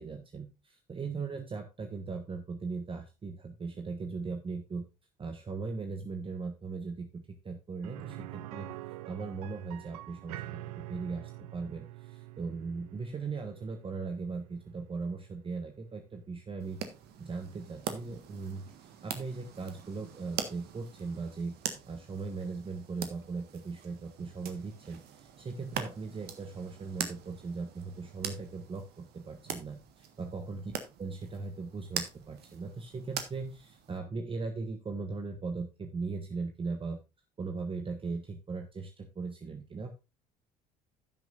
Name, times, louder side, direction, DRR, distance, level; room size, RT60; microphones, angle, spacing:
voice 1, 0.0-4.8 5.2-8.7 9.1-16.8 17.2-21.5 21.9-30.7 31.0-37.0 37.4-39.9, right 4 dB, 30° right, 5 dB, 1.3 m, -39 dB
sound 1, 7.8-17.6 17.9-18.0 20.5-20.6, right 18 dB, 75° right, 0.4 m, -47 dB
sound 2, 16.6-34.0, right 8 dB, 60° right, 1.5 m, -43 dB
16.0 x 6.2 x 2.5 m, 0.26 s
hypercardioid pair, 60°, 19 cm